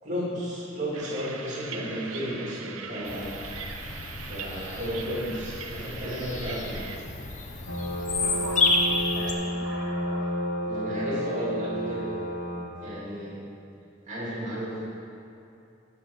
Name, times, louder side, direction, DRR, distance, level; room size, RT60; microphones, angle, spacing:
voice 1, 0.0-3.3 4.3-6.9 10.7-12.1 12.8-13.4 14.1-14.7, equal, 35° right, -7 dB, 2.6 m, -33 dB
sound 1, 0.9-7.0, right 5 dB, 85° right, 0.7 m, -41 dB
Bird vocalization bird call bird song, 3.0-9.3, left 3 dB, 35° left, 0.8 m, -30 dB
sound 2, 7.7-12.6, equal, 70° left, 2.3 m, -31 dB
voice 2, 8.1-10.3, equal, 5° right, -11 dB, 2.5 m, -41 dB
12.5 x 5.0 x 6.5 m, 2.6 s
head